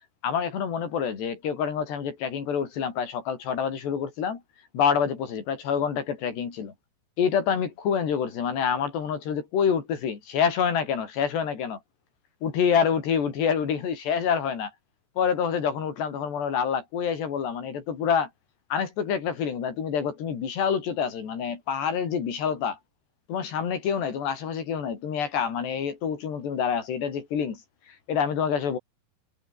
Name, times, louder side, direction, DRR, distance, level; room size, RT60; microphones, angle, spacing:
voice 1, 0.2-4.4 4.7-6.7 7.2-11.8 12.4-14.7 15.2-18.3 18.7-22.8 23.3-27.6 27.9-28.8, left 7 dB, 80° left, 6.2 m, -27 dB
omnidirectional pair, 4.8 m